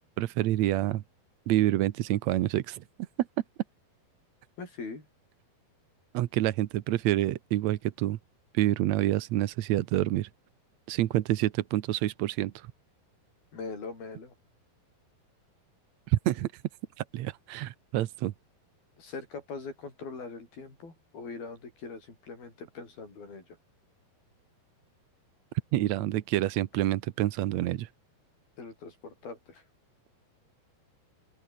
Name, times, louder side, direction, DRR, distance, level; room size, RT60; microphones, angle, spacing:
voice 1, 0.2-1.0 1.5-2.8 6.1-8.2 8.5-10.3 10.9-12.7 16.1-16.5 17.0-18.3 25.7-27.9, right 14 dB, 85° right, 1.5 m, -27 dB
voice 2, 4.6-5.1 13.5-14.3 19.0-23.4 28.6-29.6, left 4 dB, 70° left, 9.9 m, -42 dB
open air
omnidirectional pair, 4.5 m